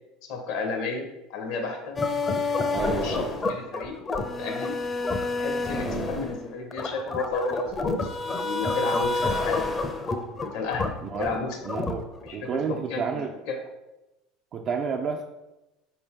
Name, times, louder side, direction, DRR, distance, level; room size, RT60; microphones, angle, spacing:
voice 1, 0.2-1.0 1.3-1.9 2.9-4.0 4.4-4.7 5.3-9.6 10.3-11.6 12.2-13.6, left 4 dB, 70° left, 3 dB, 0.8 m, -32 dB
sound 1, 2.0-12.3, left 3 dB, 25° left, 0.5 m, -28 dB
voice 2, 2.7-3.3 5.8-6.1 11.0-11.4 11.7-12.1 12.3-13.3 14.5-15.2, right 6 dB, 50° right, 3 dB, 0.3 m, -30 dB
4.3 x 2.7 x 3.6 m, 1.0 s
supercardioid pair, 90°, 0 cm